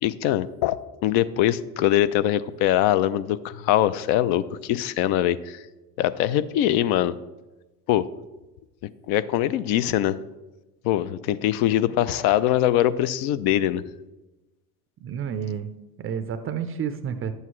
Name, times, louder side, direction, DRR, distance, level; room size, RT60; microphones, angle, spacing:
voice 1, 0.0-0.8 1.0-5.6 6.0-7.1 7.9-8.1 9.1-10.2 10.8-13.8, left 12 dB, 50° left, 15 dB, 0.6 m, -22 dB
voice 2, 15.0-15.7 16.0-17.3, right 7 dB, 25° right, 10 dB, 0.5 m, -30 dB
11.0 x 8.1 x 3.1 m, 1.1 s
hypercardioid pair, 85°, 49 cm